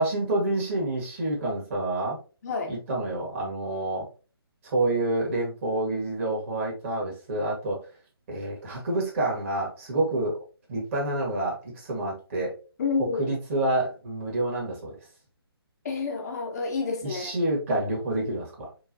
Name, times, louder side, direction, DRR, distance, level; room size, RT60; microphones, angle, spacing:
voice 1, 0.0-2.2 2.7-4.1 4.6-7.8 8.3-10.4 10.7-12.5 13.2-15.0 17.0-18.7, right 2 dB, 30° right, -2 dB, 1.6 m, -28 dB
voice 2, 2.4-2.7 12.8-13.3 15.8-17.5, left 4 dB, 40° left, 1 dB, 0.8 m, -29 dB
4.5 x 2.4 x 2.7 m, 0.34 s
figure-of-eight pair, 145°, 13 cm